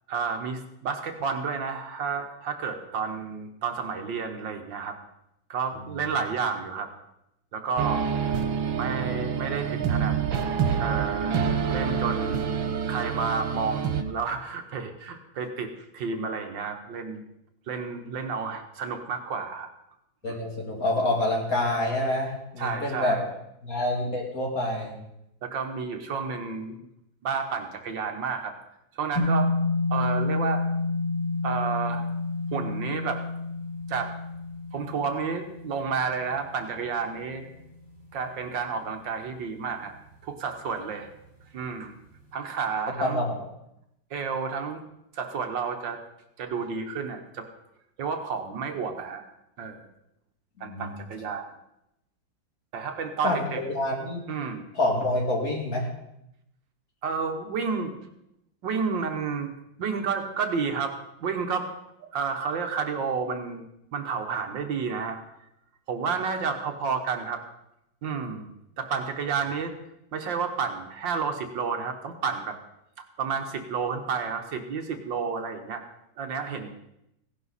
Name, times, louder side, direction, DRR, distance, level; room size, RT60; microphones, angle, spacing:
voice 1, 0.1-5.0 5.5-6.9 7.5-8.4 8.7-10.2 10.8-11.4 11.7-12.5 12.9-17.2 17.7-19.7 20.2-20.4 22.6-23.3 25.4-26.9 27.2-28.5 29.0-29.5 29.9-30.6 31.4-32.0 32.5-33.2 33.9-34.2 34.7-37.5 38.1-39.9 40.2-41.1 41.5-41.9 42.3-43.3 44.1-44.8 45.1-46.0 46.4-47.5 48.0-49.2 49.6-49.8 50.6-51.4 52.7-53.6 54.3-54.8 57.0-57.9 58.6-59.5 59.8-61.7 62.0-63.6 63.9-65.2 65.9-67.4 68.0-68.5 68.8-69.7 70.1-72.6 73.2-75.8 76.2-76.7, right 5 dB, 70° right, 5 dB, 1.8 m, -31 dB
sound 1, 7.8-14.0, right 7 dB, 90° right, 1.9 m, -27 dB
voice 2, 20.2-23.1 23.6-24.9 43.0-43.2 50.6-51.0 53.2-54.2 54.7-55.9, left 1 dB, 45° left, -2 dB, 3.2 m, -27 dB
sound 2, 29.1-37.6, left 2 dB, 45° right, 3.5 m, -29 dB
16.5 x 11.0 x 4.2 m, 0.83 s
omnidirectional pair, 2.1 m